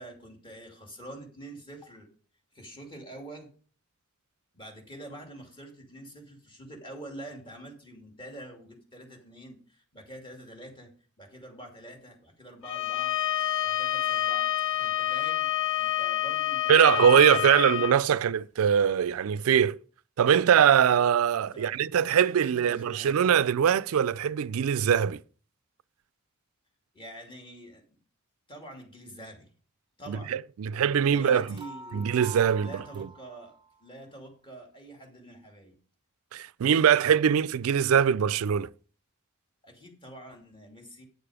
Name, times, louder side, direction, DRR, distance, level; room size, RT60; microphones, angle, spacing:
voice 1, 0.0-2.1 2.5-3.5 4.5-10.9 11.2-13.2 13.6-15.5 15.7-17.8 21.3-21.8 22.4-23.4 26.9-28.0 28.5-29.5 30.0-30.4 31.0-32.1 32.6-33.5 33.8-35.7 39.6-41.1, right 1 dB, 25° left, 2.5 m, -46 dB
Bowed string instrument, 12.6-18.0, left 12 dB, 65° left, 0.6 m, -28 dB
voice 2, 16.7-19.8 20.2-25.2 30.1-31.4 31.9-33.1 36.3-38.7, right 8 dB, 85° right, 0.4 m, -22 dB
sound 1, 31.3-33.8, right 4 dB, 20° right, 0.5 m, -46 dB
9.5 x 6.8 x 4.9 m
head